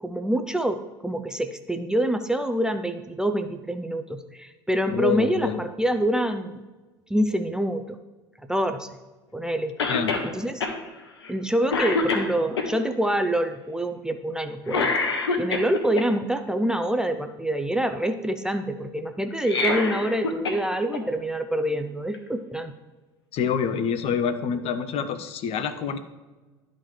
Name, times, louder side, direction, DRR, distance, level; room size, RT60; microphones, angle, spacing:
voice 1, 0.0-6.6 7.1-8.0 8.5-8.9 9.3-9.7 10.2-10.7 11.3-15.0 15.4-22.7, right 1 dB, 5° right, 7 dB, 0.5 m, -26 dB
voice 2, 4.9-5.6 9.9-10.1 23.3-26.0, left 7 dB, 50° left, 11 dB, 0.7 m, -26 dB
Cough, 9.8-10.3 10.6-10.8 11.2-11.4 11.7-12.7 14.7-16.0 19.3-20.6 20.9-21.0 22.1-22.2, left 4 dB, 85° left, 0.8 m, -25 dB
12.0 x 4.1 x 3.2 m, 1.2 s
hypercardioid pair, 75°, 14 cm